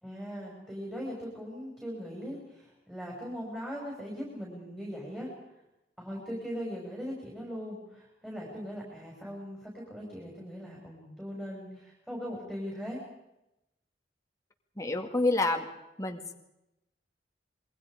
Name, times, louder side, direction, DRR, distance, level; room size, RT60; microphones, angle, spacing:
voice 1, 0.0-5.3 6.0-13.0, equal, 5° right, -3 dB, 6.1 m, -40 dB
voice 2, 14.8-15.7 16.0-16.3, left 2 dB, 20° left, 3 dB, 2.2 m, -28 dB
27.5 x 23.0 x 5.1 m, 0.89 s
head